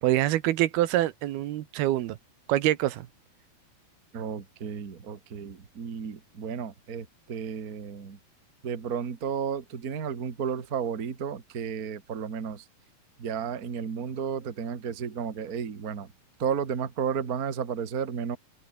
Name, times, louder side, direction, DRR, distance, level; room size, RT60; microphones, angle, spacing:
voice 1, 0.0-2.2 2.5-3.1, right 14 dB, 80° right, 3.1 m, -25 dB
voice 2, 4.1-8.2 8.6-12.6 13.2-16.1 16.4-18.4, right 7 dB, 35° right, 1.7 m, -33 dB
omnidirectional pair, 4.4 m